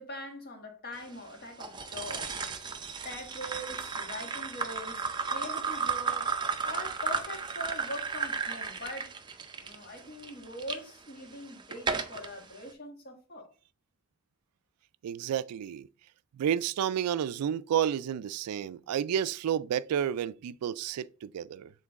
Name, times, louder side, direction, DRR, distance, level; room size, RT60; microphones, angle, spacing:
voice 1, 0.0-2.7 3.0-6.3 6.6-9.1 9.6-13.5, equal, 45° left, 1.5 m, -42 dB
sound 1, 1.6-10.8 11.3-12.3, right 5 dB, 20° right, 0.5 m, -34 dB
voice 2, 15.0-15.9 16.4-21.7, right 9 dB, 90° right, 0.3 m, -31 dB
7.3 x 3.8 x 3.5 m
head